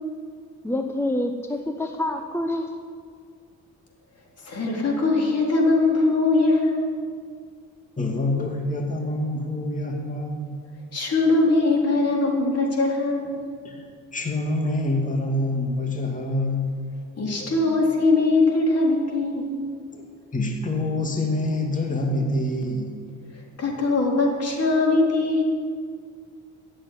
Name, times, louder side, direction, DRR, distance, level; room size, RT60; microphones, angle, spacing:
voice 1, 0.6-2.7, left 1 dB, 10° left, 5 dB, 0.9 m, -27 dB
voice 2, 4.4-6.9 10.9-13.4 17.2-19.6 23.6-25.4, left 3 dB, 55° left, -1 dB, 4.0 m, -21 dB
voice 3, 8.0-10.6 13.6-13.9 14.1-16.9 19.9-20.0 20.3-22.9, left 1 dB, 25° left, 1 dB, 2.2 m, -26 dB
14.0 x 7.9 x 9.8 m, 2.1 s
cardioid pair, 90°, 30 cm